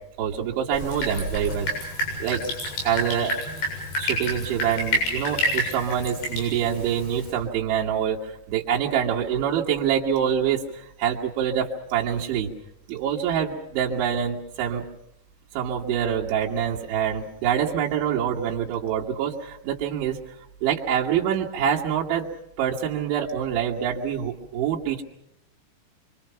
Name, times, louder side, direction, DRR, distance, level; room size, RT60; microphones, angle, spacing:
voice 1, 0.2-1.7 2.2-2.4 2.9-3.3 4.0-12.5 12.9-14.8 15.5-20.2 20.6-22.3 22.6-25.0, right 9 dB, 85° right, -4 dB, 4.1 m, -25 dB
Drip, 0.7-7.3, left 1 dB, 70° left, 9.6 m, -29 dB
27.0 x 24.0 x 5.7 m, 0.77 s
omnidirectional pair, 5.2 m